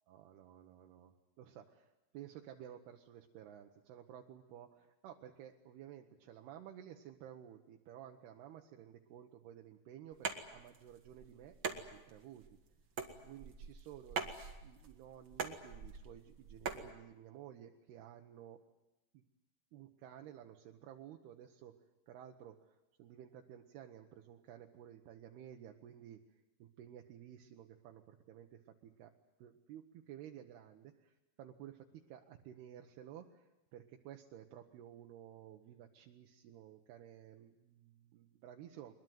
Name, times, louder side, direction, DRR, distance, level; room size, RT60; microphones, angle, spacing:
voice 1, 0.1-1.1 1.4-12.6 13.2-18.6 19.1-19.2 19.7-21.8 22.1-26.2 26.6-29.1 29.4-38.9, right 10 dB, 75° right, 3 dB, 3.1 m, -54 dB
sound 1, 10.1-16.9, right 5 dB, 40° right, 1.9 m, -44 dB
22.5 x 22.0 x 9.4 m, 0.98 s
omnidirectional pair, 4.8 m